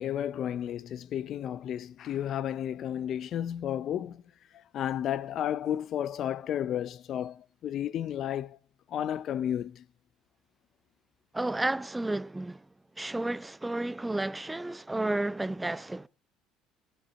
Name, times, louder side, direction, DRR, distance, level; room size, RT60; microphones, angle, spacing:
voice 1, 0.0-4.2 4.5-8.6 8.9-9.8, left 10 dB, 55° left, 0.6 m, -32 dB
voice 2, 11.3-12.6 13.0-16.1, right 2 dB, 10° right, 0.6 m, -32 dB
20.5 x 10.5 x 4.1 m
hypercardioid pair, 75°, 0 cm